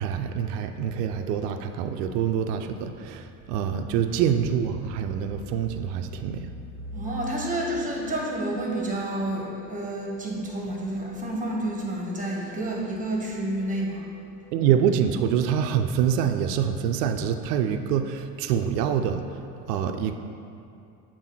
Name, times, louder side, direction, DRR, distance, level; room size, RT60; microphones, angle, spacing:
voice 1, 0.0-6.5 14.5-19.4 19.7-20.1, right 8 dB, 75° right, 7 dB, 0.5 m, -25 dB
voice 2, 6.9-14.4, right 1 dB, 15° right, -2 dB, 1.4 m, -30 dB
7.0 x 2.7 x 5.6 m, 2.6 s
hypercardioid pair, 70°, 48 cm